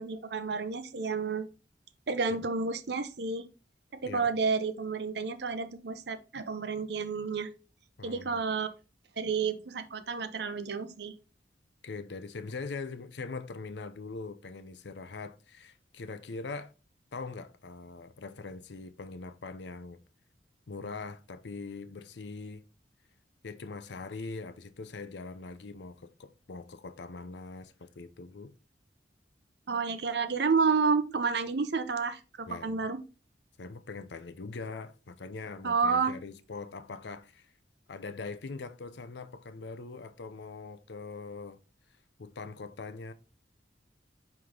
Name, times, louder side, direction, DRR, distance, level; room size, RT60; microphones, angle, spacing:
voice 1, 0.0-1.5 2.1-3.5 3.9-7.5 8.0-8.7 9.2-11.1 29.7-33.0 35.6-36.1, right 5 dB, 70° right, 0.7 m, -30 dB
voice 2, 8.0-8.4 11.8-16.7 17.1-20.0 20.7-22.6 23.4-28.5 32.5-32.8 33.6-37.5 37.9-41.6 42.2-43.1, left 4 dB, 75° left, 0.6 m, -42 dB
5.3 x 4.8 x 3.7 m
head